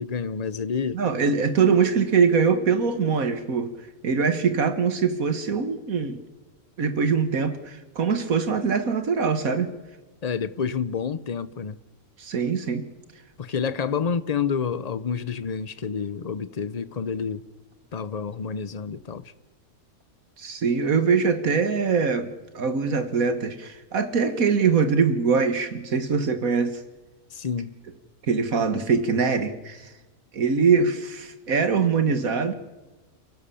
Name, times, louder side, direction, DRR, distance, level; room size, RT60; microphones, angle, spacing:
voice 1, 0.0-1.0 10.2-11.8 13.4-17.4 17.9-19.2 27.3-27.7, left 6 dB, 35° left, 0.7 m, -29 dB
voice 2, 0.9-3.7 4.0-6.2 6.8-9.7 12.2-12.8 20.4-26.8 28.3-29.9 30.3-32.5, right 5 dB, 70° right, 1.8 m, -23 dB
29.5 x 16.5 x 7.0 m
omnidirectional pair, 1.6 m